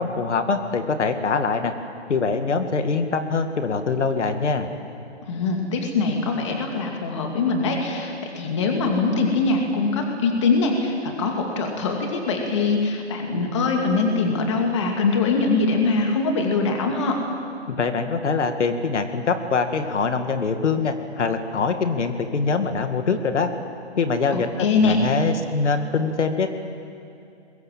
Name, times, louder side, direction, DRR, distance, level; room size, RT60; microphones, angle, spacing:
voice 1, 0.0-1.7 2.1-4.7 17.7-23.5 24.0-26.5, left 4 dB, 90° left, 7 dB, 2.3 m, -23 dB
voice 2, 5.3-17.2 24.3-25.0, left 4 dB, 25° left, 2 dB, 2.5 m, -23 dB
27.0 x 22.0 x 7.6 m, 2.6 s
hypercardioid pair, 180°, 34 cm